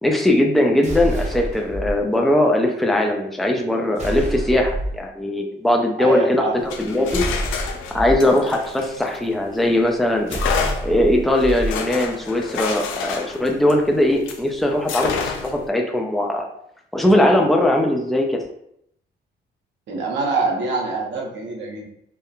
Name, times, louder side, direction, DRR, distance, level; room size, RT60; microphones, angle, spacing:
voice 1, 0.0-6.4 6.8-7.2 7.9-10.4 10.8-16.5 16.9-18.4, left 1 dB, ahead, 2 dB, 0.4 m, -20 dB
sound 1, 0.8-1.9 4.0-5.0 7.1-8.2 10.3-11.7, right 1 dB, 35° right, 0.7 m, -27 dB
voice 2, 6.0-6.6 19.9-21.8, right 3 dB, 65° right, -2 dB, 0.8 m, -24 dB
sound 2, 6.6-9.6 10.3-14.5 14.9-15.7, left 6 dB, 85° left, 0.4 m, -29 dB
2.9 x 2.1 x 2.4 m, 0.73 s
cardioid pair, 90°, 20 cm